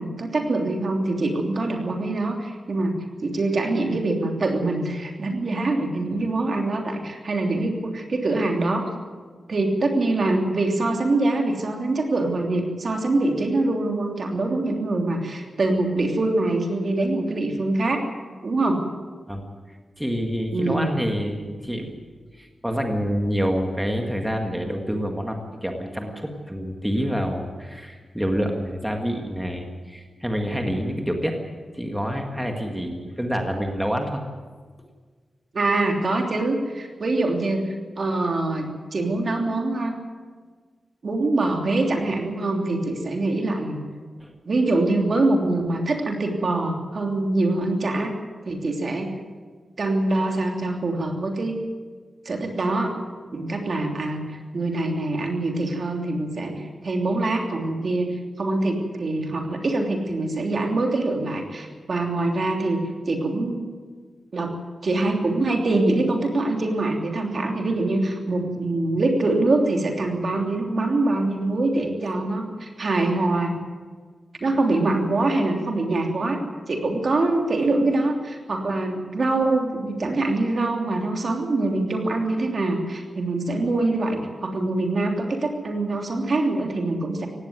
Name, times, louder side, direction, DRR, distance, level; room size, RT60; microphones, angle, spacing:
voice 1, 0.0-3.0 3.2-8.9 9.5-18.0 18.4-18.8 20.5-20.9 35.5-39.9 41.0-43.8 44.4-48.1 48.4-49.1 49.8-51.6 52.2-52.9 53.3-62.8 63.1-63.6 64.3-64.5 64.8-73.5 74.4-76.4 76.7-87.3, right 2 dB, 50° right, 2 dB, 3.0 m, -24 dB
voice 2, 19.3-21.9 22.3-31.4 31.7-34.2 44.2-44.3, equal, 5° right, 2 dB, 2.0 m, -27 dB
18.0 x 16.5 x 9.5 m, 1.5 s
wide cardioid pair, 140°, 0 cm